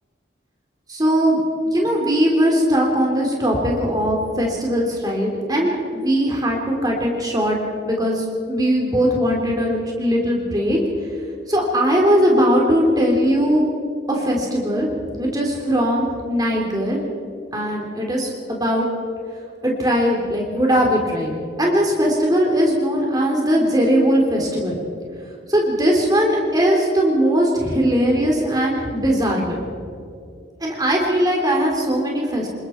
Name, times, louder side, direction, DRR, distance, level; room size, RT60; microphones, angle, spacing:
voice 1, 0.9-7.6 7.8-10.8 11.5-13.7 14.1-14.9 15.2-17.0 17.5-18.9 19.6-21.3 21.6-24.8 25.5-29.6 30.6-32.5, equal, 20° right, -1 dB, 3.3 m, -19 dB
27.5 x 21.0 x 4.5 m, 2.4 s
head